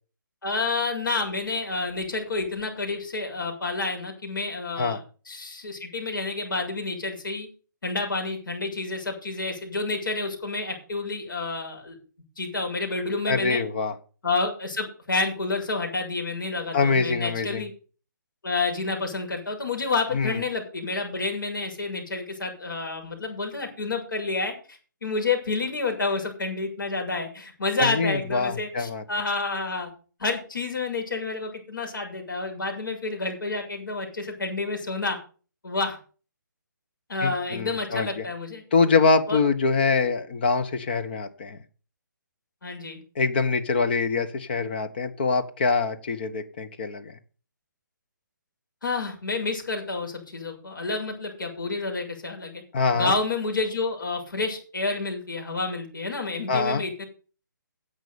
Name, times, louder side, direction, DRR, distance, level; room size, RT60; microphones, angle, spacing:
voice 1, 0.4-5.0 5.3-7.5 7.8-12.0 12.4-13.6 14.2-17.7 18.4-29.9 30.2-35.2 35.6-36.0 37.1-38.6 39.3-39.4 42.6-43.0 48.8-52.6 52.9-57.0, left 3 dB, 80° left, 2 dB, 6.9 m, -29 dB
voice 2, 13.3-14.0 16.7-17.7 20.1-20.4 27.8-29.0 37.2-38.2 38.7-41.6 43.1-47.1 52.7-53.1 56.5-56.8, left 4 dB, 30° left, 9 dB, 1.3 m, -24 dB
10.5 x 8.1 x 7.0 m, 0.38 s
hypercardioid pair, 175°, 11 cm